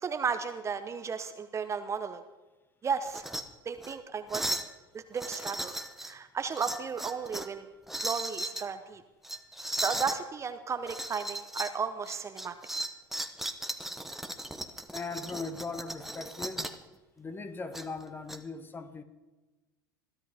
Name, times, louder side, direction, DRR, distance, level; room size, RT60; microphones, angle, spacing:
voice 1, 0.0-2.2 2.8-3.2 3.7-4.6 4.9-5.7 6.0-7.7 8.0-9.0 9.8-12.5, right 6 dB, 25° right, 9 dB, 0.9 m, -34 dB
sound 1, 3.1-3.4 3.8-3.9 4.3-4.7 5.2-6.1 6.6-7.5 7.9-8.6 9.2-10.2 10.9-11.8 12.1-16.8 17.7-18.4, right 1 dB, 5° right, 1.1 m, -36 dB
voice 2, 14.9-16.7 17.2-19.0, left 4 dB, 20° left, 9 dB, 1.4 m, -39 dB
21.5 x 13.0 x 3.6 m, 1.1 s
hypercardioid pair, 80°, 11 cm